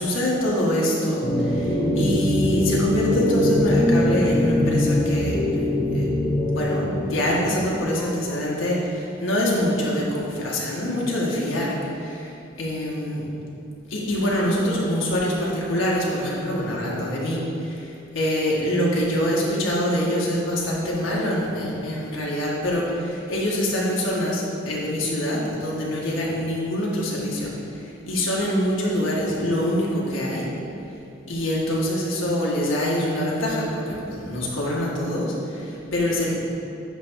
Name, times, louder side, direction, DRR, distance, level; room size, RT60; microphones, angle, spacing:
voice 1, 0.0-5.7 5.9-6.1 6.4-13.2 13.9-30.5 31.3-36.3, equal, 90° left, -4 dB, 1.8 m, -25 dB
sound 1, 1.2-8.4, left 1 dB, 30° left, 1.1 m, -22 dB
10.0 x 3.5 x 6.5 m, 2.7 s
head